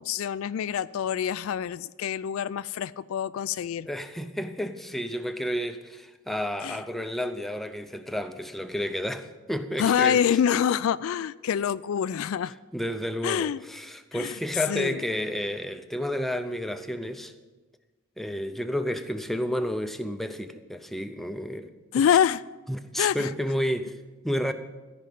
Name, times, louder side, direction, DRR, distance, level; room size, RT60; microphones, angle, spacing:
voice 1, 0.0-3.9 6.6-6.8 9.8-12.5 13.2-13.6 14.1-14.4 14.7-15.0 21.9-22.4 23.0-23.3, left 8 dB, 75° left, 0.3 m, -26 dB
voice 2, 3.9-10.2 12.7-17.3 18.2-21.7 22.7-23.9 24.2-24.5, equal, ahead, 0.5 m, -31 dB
14.0 x 5.4 x 7.6 m
head